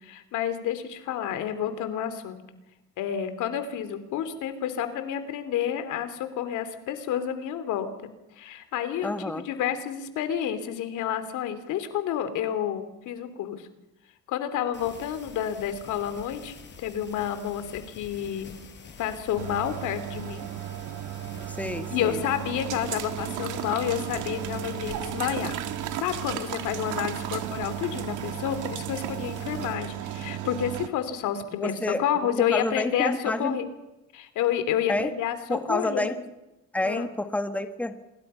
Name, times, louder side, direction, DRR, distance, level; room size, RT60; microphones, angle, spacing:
voice 1, 0.0-2.4 3.0-7.9 8.4-13.7 14.3-16.5 16.8-18.5 19.0-20.5 21.9-25.6 25.9-33.7 34.1-36.1 36.8-37.1, left 10 dB, 85° left, 10 dB, 3.0 m, -30 dB
voice 2, 9.0-9.4 21.5-22.2 31.5-32.0 32.5-33.6 34.9-35.1 35.5-36.2 36.7-37.9, left 1 dB, 5° left, 8 dB, 1.6 m, -29 dB
sound 1, 14.7-29.7, left 5 dB, 40° left, 4.8 m, -48 dB
sound 2, 19.4-30.9, right 11 dB, 85° right, 1.8 m, -34 dB
27.5 x 22.0 x 5.7 m, 0.97 s
cardioid pair, 135°, 30 cm